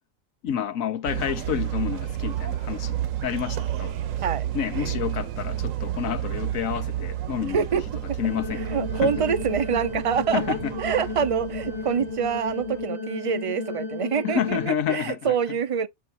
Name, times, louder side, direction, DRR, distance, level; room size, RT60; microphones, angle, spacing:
voice 1, 0.4-4.0 4.5-7.6 8.2-9.1 10.3-10.7 14.2-15.6, left 9 dB, 80° left, 1.3 m, -29 dB
sound 1, 1.1-12.9, right 11 dB, 75° right, 1.1 m, -31 dB
sound 2, 8.2-14.7, left 3 dB, 30° left, 1.3 m, -33 dB
voice 2, 8.7-15.9, right 7 dB, 45° right, 0.4 m, -26 dB
7.6 x 5.2 x 2.6 m
omnidirectional pair, 1.4 m